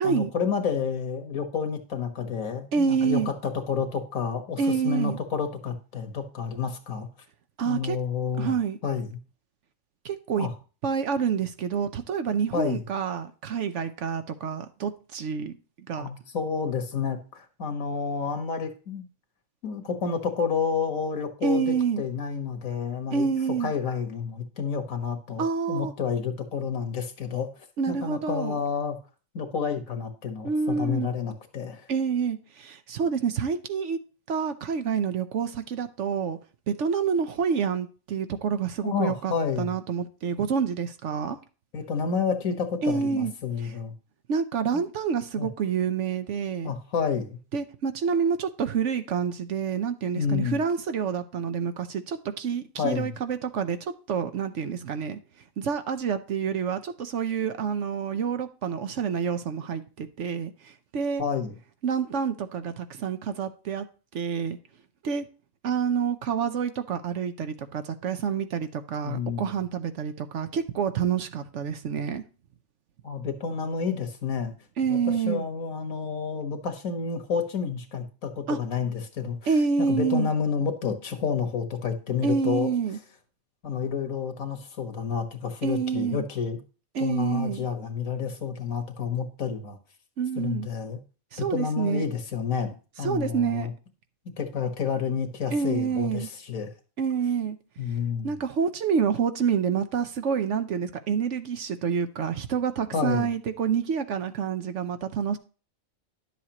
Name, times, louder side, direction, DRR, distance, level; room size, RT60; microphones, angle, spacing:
voice 1, 0.0-7.1 7.6-8.6 8.8-9.2 10.4-10.5 12.5-12.8 16.0-19.0 19.6-23.3 23.6-27.5 27.9-29.0 29.3-31.9 38.8-39.7 41.7-43.9 44.7-44.8 45.4-45.5 46.6-47.4 50.2-50.6 52.8-53.1 61.2-61.5 69.0-69.5 73.0-74.5 74.9-79.5 79.9-82.7 83.6-86.6 87.0-89.8 90.4-91.0 91.4-93.7 94.4-96.7 97.8-98.3 102.9-103.3, left 6 dB, 75° left, 1.7 m, -30 dB
voice 2, 2.7-3.3 4.6-5.2 7.6-8.0 8.4-8.8 10.0-10.5 10.8-16.1 21.4-22.0 23.1-23.7 25.4-25.9 27.8-28.6 30.4-31.1 31.9-34.0 34.3-36.4 36.7-41.4 42.8-43.3 43.6-43.7 44.3-46.7 47.5-55.2 55.6-61.2 61.8-63.9 64.1-64.6 65.0-65.3 65.6-72.2 74.8-75.4 78.5-78.6 79.5-80.3 82.2-83.0 85.6-86.2 86.9-87.7 90.2-90.7 91.3-92.0 93.0-93.7 95.5-96.3 97.0-97.6 98.2-105.4, right 6 dB, 65° right, 1.0 m, -28 dB
11.0 x 7.3 x 2.9 m
omnidirectional pair, 1.5 m